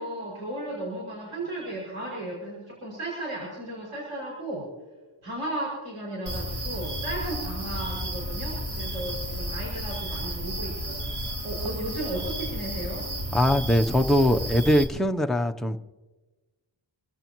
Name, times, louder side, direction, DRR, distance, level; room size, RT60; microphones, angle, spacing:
voice 1, 0.0-4.7 5.2-11.1 11.4-13.0, right 1 dB, 80° right, 6.0 m, -35 dB
sound 1, 6.3-14.8, equal, 50° right, 3.2 m, -32 dB
voice 2, 13.3-15.8, equal, ahead, 0.7 m, -22 dB
27.0 x 15.5 x 3.0 m
wide cardioid pair, 80°, 50 cm